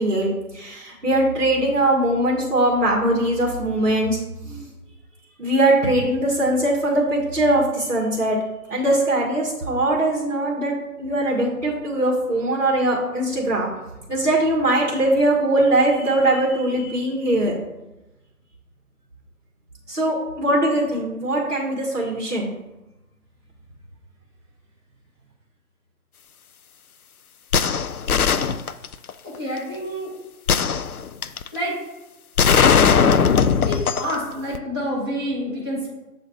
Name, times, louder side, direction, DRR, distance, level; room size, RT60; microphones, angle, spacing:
voice 1, 0.0-4.2 4.4-4.7 5.4-8.4 8.7-10.7 11.0-13.7 14.1-17.5 19.9-22.5, right 1 dB, 50° right, -4 dB, 1.7 m, -21 dB
sound 1, 27.5-29.1 30.5-31.5 32.4-34.2 34.5-34.6, left 6 dB, 70° left, 0.5 m, -18 dB
voice 2, 29.2-30.1 31.5-31.7 33.6-35.9, equal, 15° right, -8 dB, 1.0 m, -28 dB
7.2 x 4.0 x 4.3 m, 1.0 s
figure-of-eight pair, 155°, 46 cm